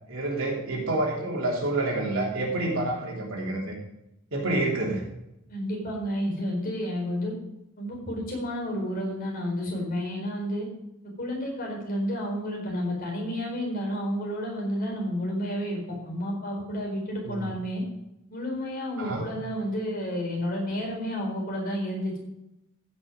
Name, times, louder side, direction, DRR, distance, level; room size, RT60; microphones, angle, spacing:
voice 1, 0.1-3.7 4.3-5.0 17.2-17.5 19.0-19.2, right 2 dB, 70° right, -2 dB, 3.4 m, -28 dB
voice 2, 5.5-7.3 7.8-10.7 11.2-17.8 18.3-22.2, equal, 45° left, -1 dB, 4.3 m, -31 dB
15.0 x 6.4 x 5.2 m, 0.88 s
head